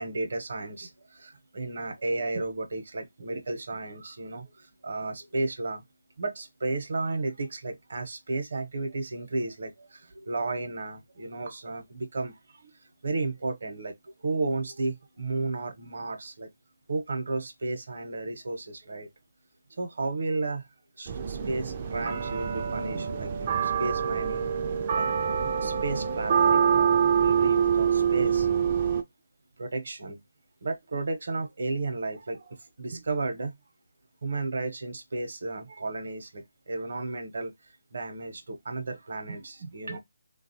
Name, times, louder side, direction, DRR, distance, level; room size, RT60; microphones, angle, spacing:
voice 1, 0.0-5.8 6.2-12.7 13.0-16.5 16.9-19.1 19.7-20.7 21.0-24.5 24.9-25.1 25.6-28.5 28.8-28.9 29.6-30.2 30.6-33.6 34.2-37.5 37.9-40.0, right 2 dB, 60° right, 0.8 m, -33 dB
sound 1, 21.1-29.0, right 7 dB, 25° right, 0.3 m, -25 dB
3.0 x 2.3 x 2.6 m
figure-of-eight pair, 165°, 0 cm